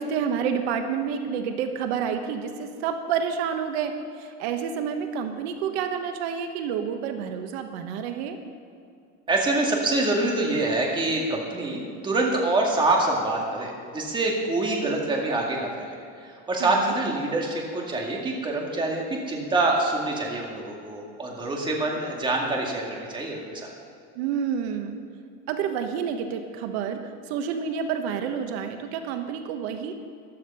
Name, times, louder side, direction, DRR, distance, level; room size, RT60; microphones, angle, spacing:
voice 1, 0.0-8.4 16.6-16.9 24.1-25.0 25.5-29.9, right 7 dB, 90° right, 7 dB, 1.4 m, -29 dB
voice 2, 9.3-16.0 16.2-23.7, right 2 dB, 15° right, -1 dB, 2.1 m, -26 dB
15.0 x 11.5 x 5.6 m, 2.5 s
cardioid pair, 165°, 31 cm